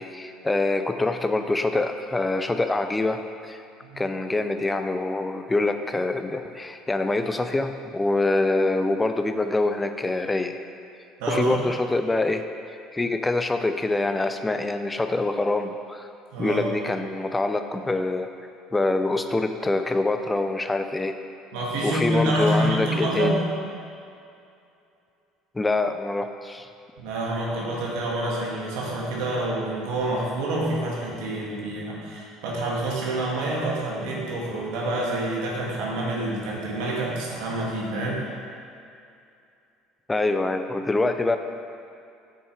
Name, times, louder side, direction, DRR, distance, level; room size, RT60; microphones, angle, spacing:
voice 1, 0.0-3.6 4.0-10.6 11.3-12.4 12.9-16.1 16.4-18.3 18.7-21.2 21.8-23.4 25.5-26.7 40.1-41.4, left 2 dB, 15° left, 8 dB, 0.5 m, -25 dB
voice 2, 11.2-11.6 16.3-16.7 21.5-23.5 27.0-38.2, right 1 dB, 80° right, -4 dB, 1.7 m, -27 dB
7.6 x 5.6 x 4.5 m, 2.5 s
supercardioid pair, 85°, 0 cm